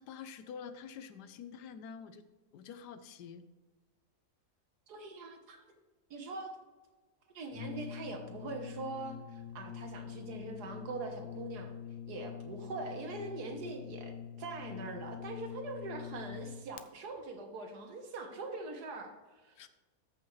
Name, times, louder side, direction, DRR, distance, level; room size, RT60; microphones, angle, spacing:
voice 1, 0.0-2.3 2.5-3.4 19.6-19.7, left 7 dB, 85° left, 11 dB, 1.3 m, -47 dB
voice 2, 4.9-5.6 6.1-6.6 7.3-11.7 12.1-19.6, right 3 dB, 75° right, 5 dB, 1.7 m, -43 dB
Brass instrument, 7.5-16.9, left 8 dB, 70° left, 0.8 m, -45 dB
13.5 x 5.6 x 3.1 m, 1.3 s
omnidirectional pair, 1.7 m